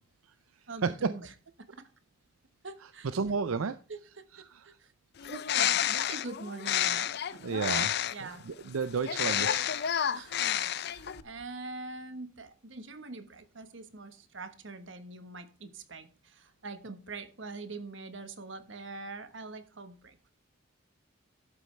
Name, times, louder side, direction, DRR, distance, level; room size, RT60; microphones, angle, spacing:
voice 1, 0.7-1.3 1.7-1.9 2.6-3.1 3.9-4.9 5.5-7.4 8.1-8.4 10.1-20.3, right 3 dB, 60° right, 10 dB, 1.2 m, -44 dB
voice 2, 3.1-3.7 5.3-5.4 7.4-7.9 8.5-9.9, right 5 dB, 85° right, 13 dB, 0.5 m, -31 dB
Bird, 5.2-8.3 9.0-11.2, left 10 dB, 50° left, 0.4 m, -30 dB
12.0 x 8.1 x 3.3 m, 0.36 s
head